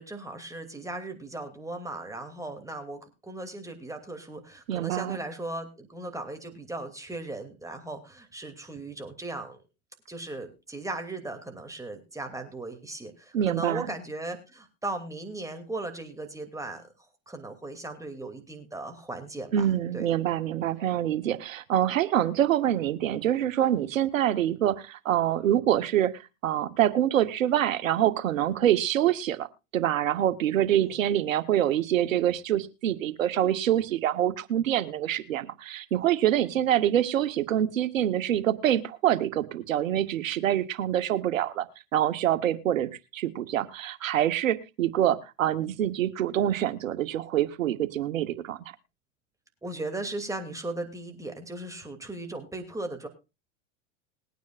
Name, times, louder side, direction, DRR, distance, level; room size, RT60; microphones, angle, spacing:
voice 1, 0.0-9.6 10.1-16.8 17.3-19.5 19.9-20.1 30.8-30.9 49.6-53.1, right 2 dB, 10° right, 5 dB, 2.6 m, -37 dB
voice 2, 4.7-5.2 13.3-13.9 19.5-29.5 29.7-41.7 41.9-48.6, right 11 dB, 90° right, 13 dB, 1.3 m, -26 dB
21.0 x 9.4 x 2.4 m, 0.28 s
hypercardioid pair, 105°, 39 cm